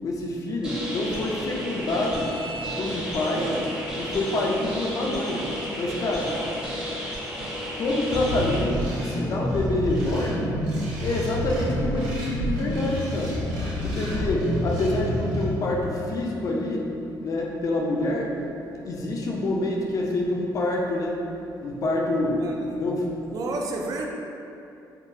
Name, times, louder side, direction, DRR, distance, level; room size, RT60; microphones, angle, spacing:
voice 1, 0.0-2.3 2.8-3.5 3.9-5.4 5.7-6.3 7.8-10.5 11.0-13.4 13.8-16.9 17.2-18.4 18.8-21.2 21.6-23.1, left 2 dB, 45° left, -1 dB, 0.4 m, -27 dB
sound 1, 0.6-8.6, equal, 10° right, 0.6 m, -33 dB
voice 2, 3.3-3.7 6.3-6.6 18.4-18.6 22.4-22.8 23.3-24.1, right 3 dB, 50° right, 1 dB, 0.4 m, -32 dB
sound 2, 8.1-15.4, equal, 85° right, 1.1 m, -29 dB
sound 3, 9.9-16.1, left 3 dB, 75° left, 1.0 m, -38 dB
3.6 x 2.3 x 2.7 m, 2.7 s
cardioid pair, 130°, 8 cm